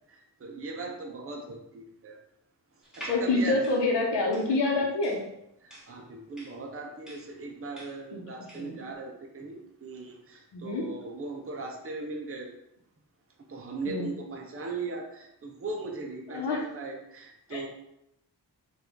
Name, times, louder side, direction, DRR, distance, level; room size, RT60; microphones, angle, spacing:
voice 1, 0.1-2.2 3.0-3.6 4.5-4.9 5.6-12.5 13.5-17.7, right 3 dB, 30° right, 1 dB, 0.8 m, -39 dB
sound 1, 2.8-8.8, right 1 dB, ahead, 1.5 m, -47 dB
voice 2, 3.1-5.2 8.1-8.2 8.5-8.8 10.5-10.9 13.9-14.1 16.3-16.6 17.5-17.7, left 2 dB, 80° left, 0 dB, 1.1 m, -27 dB
5.3 x 2.6 x 3.8 m, 0.83 s
cardioid pair, 100°, 42 cm